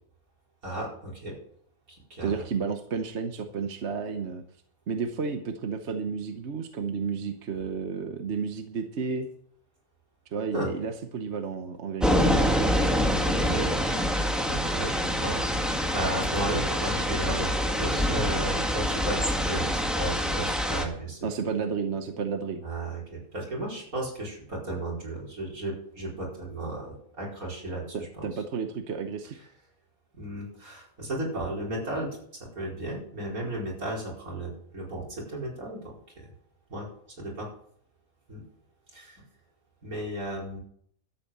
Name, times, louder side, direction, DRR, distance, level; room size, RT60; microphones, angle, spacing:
voice 1, 0.6-1.4 1.9-2.3 10.5-10.7 13.2-13.7 14.5-15.4 15.7-17.5 17.8-21.3 22.6-28.2 30.2-32.1 32.5-36.3 36.7-36.9 37.2-37.5 38.3-38.4 38.9-39.2 39.8-40.6, right 1 dB, 75° right, -3 dB, 5.2 m, -34 dB
voice 2, 2.2-4.4 4.9-9.3 10.3-12.3 21.2-22.6 27.9-29.4, right 5 dB, 55° right, 6 dB, 1.2 m, -32 dB
sound 1, 12.0-20.8, equal, ahead, 1.6 m, -26 dB
13.0 x 8.5 x 7.4 m, 0.64 s
omnidirectional pair, 1.5 m